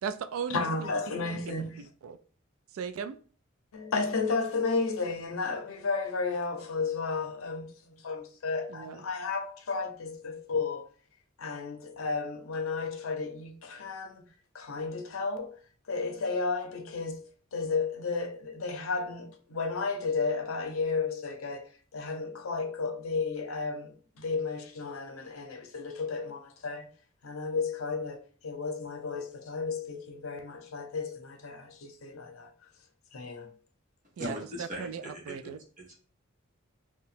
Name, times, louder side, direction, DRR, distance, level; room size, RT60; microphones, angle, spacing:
voice 1, 0.0-2.2 2.7-3.2 8.7-9.0 34.2-35.6, right 7 dB, 80° right, 0.3 m, -38 dB
voice 2, 0.5-1.9 3.7-10.9 11.4-14.2 14.5-15.6 15.9-17.3 17.5-26.9 27.2-32.5 33.1-33.5, left 4 dB, 90° left, 0.6 m, -33 dB
voice 3, 34.2-36.0, equal, 40° right, 1.3 m, -40 dB
2.8 x 2.2 x 4.0 m
head